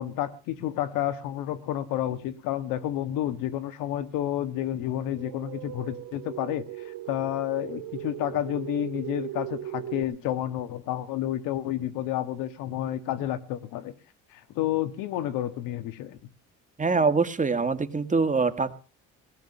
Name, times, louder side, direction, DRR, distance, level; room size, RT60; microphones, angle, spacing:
voice 1, 0.0-13.9 14.3-16.2, left 12 dB, 85° left, 12 dB, 1.7 m, -30 dB
sound 1, 5.0-10.0, right 13 dB, 80° right, 2.7 m, -38 dB
voice 2, 16.8-18.7, right 4 dB, 25° right, 10 dB, 2.0 m, -24 dB
19.0 x 9.3 x 6.8 m, 0.38 s
supercardioid pair, 85°, 32 cm